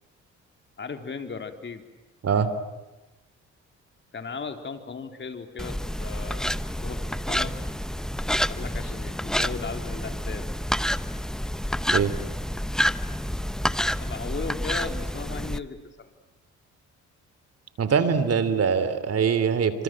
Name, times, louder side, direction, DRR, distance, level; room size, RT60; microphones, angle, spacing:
voice 1, 0.8-1.8 4.1-6.5 6.8-7.7 8.5-10.4 14.0-16.1, left 5 dB, 40° left, 7 dB, 3.8 m, -36 dB
sound 1, 5.6-15.6, equal, ahead, 1.0 m, -28 dB
voice 2, 17.8-19.8, right 6 dB, 55° right, 13 dB, 3.2 m, -23 dB
29.5 x 26.5 x 7.7 m, 1.1 s
cardioid pair, 90°, 30 cm